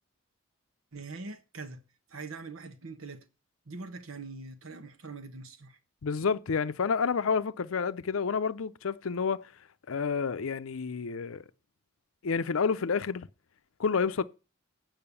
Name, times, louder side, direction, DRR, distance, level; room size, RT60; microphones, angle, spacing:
voice 1, 0.9-1.8 2.1-3.3 3.7-5.8, right 3 dB, 85° right, 1.3 m, -43 dB
voice 2, 6.0-9.5 9.9-11.4 12.2-13.3 13.8-14.2, left 5 dB, 85° left, 0.6 m, -29 dB
8.8 x 5.7 x 6.8 m
head